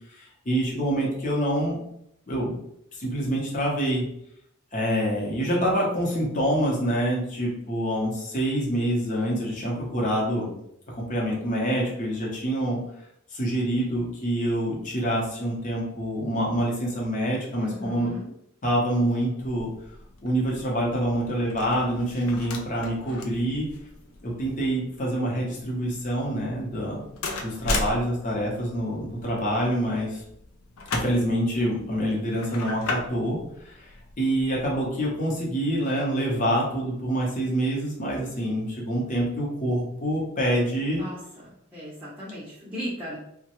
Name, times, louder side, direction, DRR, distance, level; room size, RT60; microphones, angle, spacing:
voice 1, 0.1-1.8 2.3-2.6 3.0-4.1 4.7-10.5 10.9-12.8 13.3-18.1 18.6-19.7 20.2-23.7 24.2-27.0 27.4-30.2 30.9-33.4 33.6-41.0, right 1 dB, 40° left, -4 dB, 0.8 m, -26 dB
voice 2, 17.6-18.3 40.9-43.2, equal, 10° right, -9 dB, 0.6 m, -37 dB
sound 1, 19.4-34.9, left 3 dB, 85° left, 0.4 m, -37 dB
3.0 x 2.2 x 2.9 m, 0.75 s
head